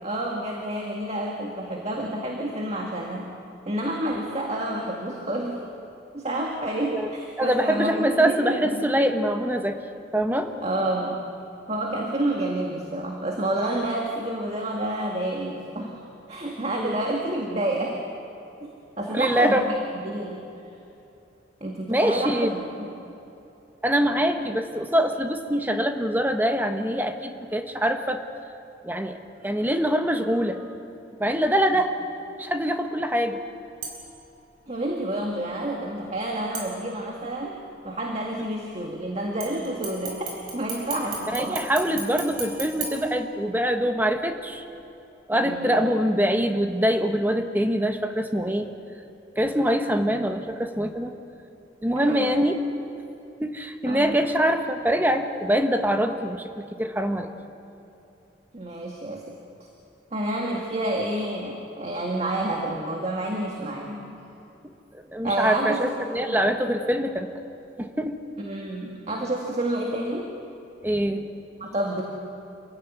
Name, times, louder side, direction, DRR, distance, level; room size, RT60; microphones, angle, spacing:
voice 1, 0.0-3.3 3.7-5.6 6.1-8.9 10.6-11.2 11.7-18.0 18.6-18.7 19.0-19.7 20.0-20.4 21.6-23.0 34.7-41.7 45.3-45.8 51.9-52.3 53.9-54.2 58.5-59.3 60.1-64.2 65.2-65.9 66.2-66.4 68.4-70.3 71.6-72.0, right 1 dB, 35° right, 0 dB, 2.0 m, -29 dB
voice 2, 7.4-9.8 10.1-10.5 16.8-16.9 19.1-19.6 21.9-22.5 23.8-28.2 28.8-29.2 29.4-30.6 31.2-31.9 32.4-33.4 41.3-44.6 45.3-48.7 49.4-51.1 51.8-52.6 53.4-57.3 64.6-67.3 67.8-68.2 70.8-71.3, equal, 10° right, 5 dB, 1.2 m, -24 dB
sound 1, 33.8-34.3 36.5-37.3 39.4-43.8 44.2-44.3, right 4 dB, 55° right, 5.0 m, -37 dB
26.5 x 16.0 x 9.5 m, 2.9 s
head